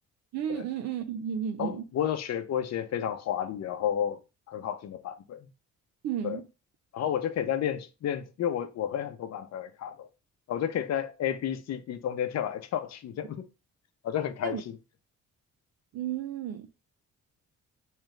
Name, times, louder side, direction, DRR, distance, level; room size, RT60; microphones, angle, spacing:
voice 1, 0.3-1.9 6.0-6.5 14.4-14.6 15.9-16.7, right 9 dB, 60° right, 0.5 m, -33 dB
voice 2, 1.6-4.2 4.5-5.5 6.2-6.4 6.9-10.1 10.5-13.5 14.0-14.8, left 9 dB, 60° left, 0.7 m, -31 dB
3.6 x 3.2 x 3.2 m
cardioid pair, 90°, 30 cm